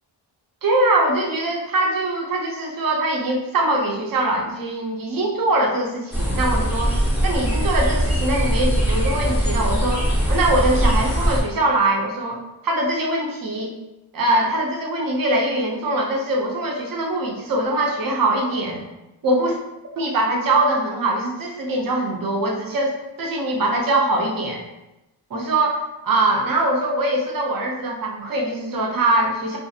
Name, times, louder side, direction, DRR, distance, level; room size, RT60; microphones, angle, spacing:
voice 1, 0.6-6.9 7.2-13.7 14.1-18.8 19.2-19.6 20.0-24.6 25.3-29.6, right 2 dB, 50° right, 0 dB, 0.6 m, -22 dB
sound 1, 6.1-11.4, equal, 5° right, 0.6 m, -21 dB
2.4 x 2.4 x 2.7 m, 0.97 s
wide cardioid pair, 125°, 46 cm